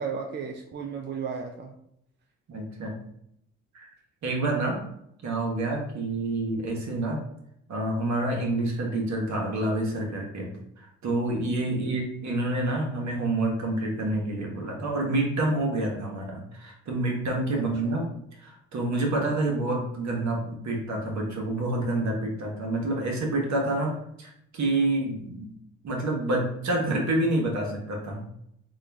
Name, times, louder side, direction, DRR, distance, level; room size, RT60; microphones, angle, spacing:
voice 1, 0.0-1.7 11.7-12.1 17.5-17.9, right 6 dB, 35° right, 2 dB, 0.5 m, -35 dB
voice 2, 2.5-3.0 3.7-3.9 4.2-4.8 5.2-7.2 7.7-18.1 18.4-25.5 25.8-28.3, right 2 dB, 60° right, 0 dB, 1.2 m, -28 dB
3.7 x 2.4 x 3.4 m, 0.74 s
supercardioid pair, 55°, 31 cm